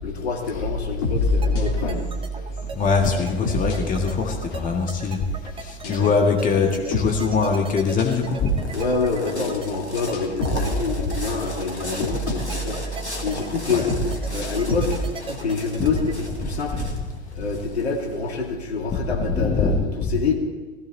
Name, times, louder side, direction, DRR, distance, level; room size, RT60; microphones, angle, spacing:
voice 1, 0.0-2.1 5.8-6.2 8.7-12.8 13.2-13.9 14.3-16.8 17.3-20.3, left 4 dB, 70° left, 2 dB, 2.4 m, -27 dB
sound 1, 0.5-5.0 5.8-6.2 6.7-8.4 8.8-8.9 10.1-15.1, left 1 dB, 50° left, 3.6 m, -28 dB
sound 2, 1.4-16.1, right 4 dB, 15° right, 1.2 m, -37 dB
voice 2, 2.8-5.2 5.6-8.5 13.7-13.9 15.8-15.9 16.7-16.9 19.2-19.8, left 5 dB, 25° left, 3 dB, 1.9 m, -22 dB
sound 3, 7.9-18.3, left 1 dB, 90° left, 2.2 m, -37 dB
17.5 x 15.5 x 4.2 m, 1.3 s
figure-of-eight pair, 90°, 33 cm